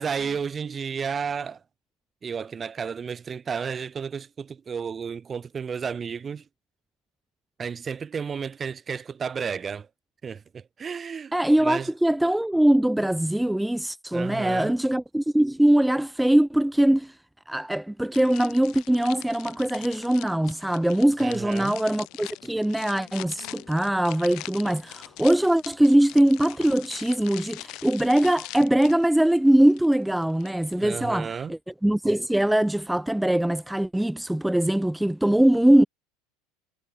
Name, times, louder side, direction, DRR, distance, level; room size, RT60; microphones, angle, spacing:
voice 1, 0.0-1.6 2.2-6.5 7.6-9.9 10.2-11.3 11.6-11.9 14.1-14.7 21.2-21.8 30.8-31.5, right 6 dB, 25° right, 1.9 m, -32 dB
voice 2, 11.3-17.2 17.5-35.9, right 1 dB, 5° right, 0.6 m, -22 dB
sound 1, 18.1-30.8, left 20 dB, 55° left, 4.9 m, -43 dB
supercardioid pair, 115°, 0 cm